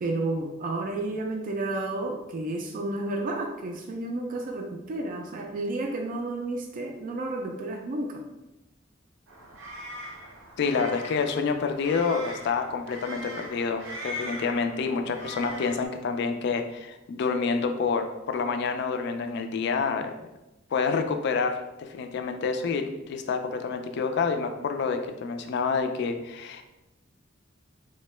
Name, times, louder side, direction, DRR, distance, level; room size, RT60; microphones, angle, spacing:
voice 1, 0.0-8.2, right 2 dB, 45° right, 1 dB, 0.3 m, -31 dB
sound 1, 9.3-15.9, equal, 90° right, 0.7 m, -40 dB
voice 2, 10.6-20.1 20.7-26.6, left 5 dB, 60° left, 6 dB, 0.3 m, -28 dB
3.5 x 2.1 x 3.1 m, 0.97 s
head